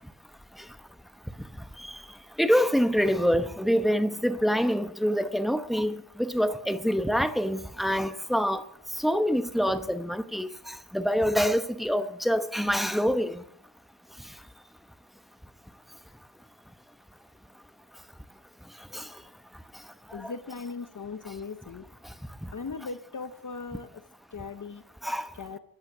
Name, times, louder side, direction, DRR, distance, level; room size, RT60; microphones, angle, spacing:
voice 1, 2.4-8.6 9.0-13.4 18.9-19.0 20.2-20.3 25.0-25.3, equal, ahead, 0.9 m, -26 dB
voice 2, 20.1-21.9 22.5-23.9 24.3-24.8 25.3-25.6, left 4 dB, 40° left, 0.9 m, -38 dB
14.0 x 8.8 x 9.9 m
wide cardioid pair, 100°, 46 cm